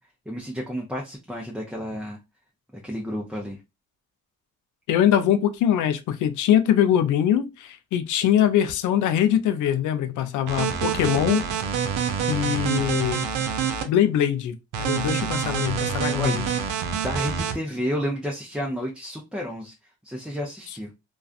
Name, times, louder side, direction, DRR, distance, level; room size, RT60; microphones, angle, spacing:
voice 1, 0.3-2.2 2.7-3.6 16.1-16.4 17.0-19.7 20.0-20.9, equal, 5° right, 0.5 m, -31 dB
voice 2, 4.9-11.5 12.3-13.3 13.9-16.5, left 10 dB, 80° left, 0.5 m, -22 dB
sound 1, 10.5-13.8 14.7-17.5, right 7 dB, 90° right, 0.6 m, -26 dB
2.4 x 2.3 x 2.3 m
cardioid pair, 90°, 30 cm